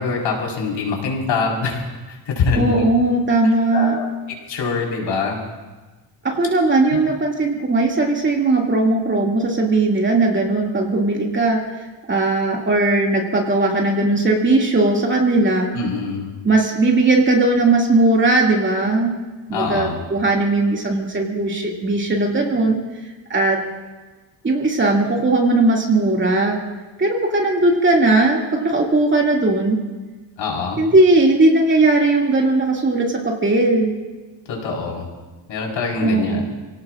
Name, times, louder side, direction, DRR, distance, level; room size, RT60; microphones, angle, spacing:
voice 1, 0.0-1.8 2.1-2.7 3.7-4.1 4.5-5.4 15.7-16.3 19.5-20.0 30.4-30.8 34.5-35.1 35.5-36.4, left 4 dB, 75° left, -2 dB, 4.8 m, -24 dB
voice 2, 2.5-4.0 6.2-11.6 12.1-15.7 16.4-19.1 19.5-22.8 23.3-23.6 24.4-26.6 27.0-29.8 30.8-34.0 36.0-36.4, right 2 dB, 25° right, -1 dB, 2.5 m, -18 dB
29.5 x 18.0 x 2.5 m, 1.2 s
cardioid pair, 155°, 46 cm